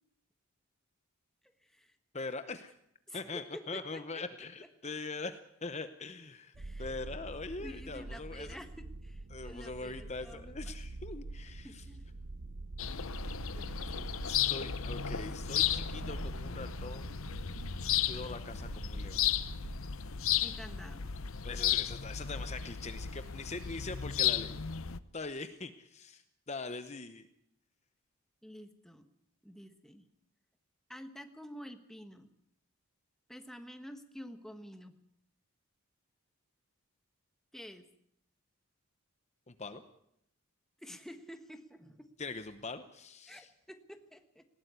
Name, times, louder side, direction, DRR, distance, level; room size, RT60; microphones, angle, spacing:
voice 1, 1.6-2.0 3.1-4.2 4.8-4.9 6.6-7.3 7.6-10.5 11.6-12.0 13.5-14.1 20.4-21.1 28.4-29.1 29.4-30.0 30.9-32.3 33.3-34.9 37.5-37.8 40.8-42.1 43.3-44.4, equal, ahead, 7 dB, 1.3 m, -49 dB
voice 2, 2.1-2.7 3.1-6.5 6.8-8.6 9.3-11.8 14.3-17.2 18.1-19.3 21.4-24.6 25.1-27.3 39.5-39.8 42.2-43.5, left 3 dB, 30° left, 10 dB, 0.8 m, -42 dB
sound 1, 6.5-19.8, right 2 dB, 85° right, 1.0 m, -45 dB
sound 2, 12.8-25.0, left 10 dB, 70° left, 0.8 m, -34 dB
19.5 x 17.5 x 8.2 m, 0.74 s
head